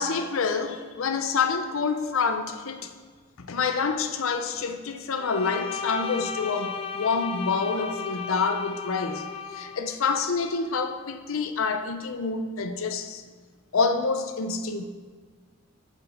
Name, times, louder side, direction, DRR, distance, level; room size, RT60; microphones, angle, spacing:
voice 1, 0.0-2.9 3.4-9.3 9.5-13.2 13.7-14.8, left 4 dB, 80° left, 8 dB, 0.6 m, -27 dB
Bowed string instrument, 5.2-9.8, left 6 dB, 25° left, 0.3 m, -35 dB
7.3 x 5.3 x 4.9 m, 1.5 s
head